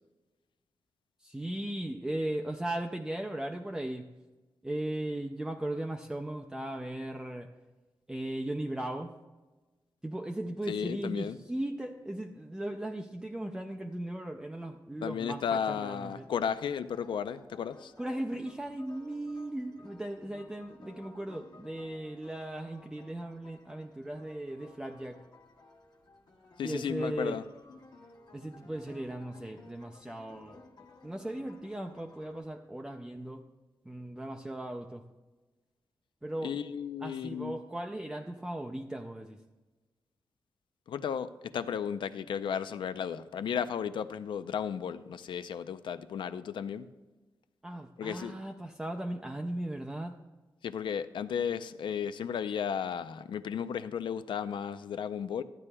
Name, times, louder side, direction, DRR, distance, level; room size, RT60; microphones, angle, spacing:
voice 1, 1.2-4.1 4.6-7.5 8.1-9.2 10.0-16.3 18.0-25.2 26.6-27.4 28.3-30.6 31.0-33.5 33.8-35.0 36.2-36.6 37.0-39.4 47.6-50.2, right 1 dB, 5° right, 3 dB, 0.4 m, -37 dB
voice 2, 10.7-11.4 15.0-17.9 26.6-27.4 36.4-37.6 40.9-46.9 48.0-48.3 50.6-55.4, left 7 dB, 80° left, 13 dB, 0.4 m, -34 dB
sound 1, 15.7-32.4, left 2 dB, 60° left, 1.1 m, -56 dB
13.5 x 9.6 x 2.2 m, 1.2 s
wide cardioid pair, 160°, 8 cm